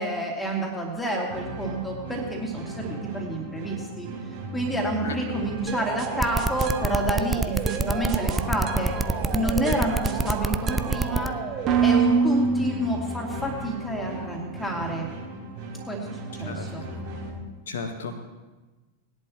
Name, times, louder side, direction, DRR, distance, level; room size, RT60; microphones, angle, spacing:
voice 1, 0.0-4.1 4.5-8.9 9.3-11.4 11.8-15.1 15.9-16.8, right 1 dB, 5° left, -1 dB, 2.5 m, -29 dB
sound 1, 1.3-17.3, right 1 dB, 55° right, 5.2 m, -37 dB
sound 2, 5.7-13.5, right 5 dB, 35° right, 1.2 m, -28 dB
sound 3, 6.2-11.3, right 3 dB, 10° right, 0.4 m, -25 dB
voice 2, 17.7-18.2, left 4 dB, 60° left, 6 dB, 1.2 m, -33 dB
19.5 x 11.0 x 3.1 m, 1.2 s
figure-of-eight pair, 90°, 0 cm